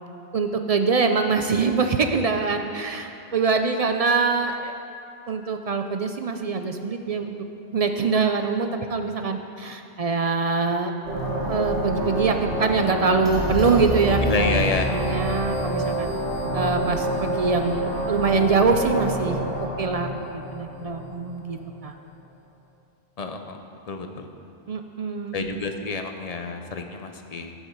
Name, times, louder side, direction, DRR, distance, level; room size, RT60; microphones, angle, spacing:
voice 1, 0.3-4.7 5.3-7.3 7.7-10.9 11.5-16.1 16.5-19.4 19.8-21.6 21.8-21.9 24.7-25.6, right 4 dB, 50° right, 6 dB, 0.4 m, -24 dB
sound 1, 11.0-21.6, right 1 dB, 90° right, 2.4 m, -27 dB
voice 2, 14.2-14.9 23.2-23.6 23.9-24.3 25.3-27.5, left 3 dB, 40° left, 5 dB, 0.6 m, -28 dB
14.0 x 6.5 x 4.5 m, 2.6 s
omnidirectional pair, 1.1 m